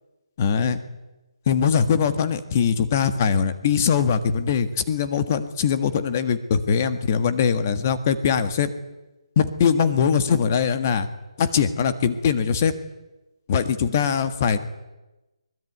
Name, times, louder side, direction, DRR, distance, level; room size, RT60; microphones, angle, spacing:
voice 1, 0.4-0.8 1.5-8.7 9.3-11.1 11.4-12.7 13.5-14.7, left 7 dB, 25° left, 11 dB, 1.6 m, -21 dB
23.5 x 21.5 x 9.4 m, 1.0 s
hypercardioid pair, 175°, 3 cm